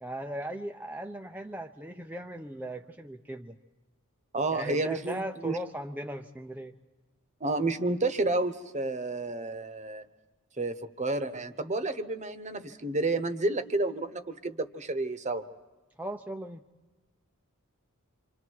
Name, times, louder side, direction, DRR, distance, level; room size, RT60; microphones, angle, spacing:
voice 1, 0.0-3.6 4.5-6.7 16.0-16.6, right 1 dB, 10° right, 4 dB, 0.7 m, -38 dB
voice 2, 4.3-5.6 7.4-10.0 10.6-15.4, right 2 dB, 35° right, 11 dB, 1.1 m, -30 dB
29.0 x 26.0 x 4.7 m, 1.2 s
head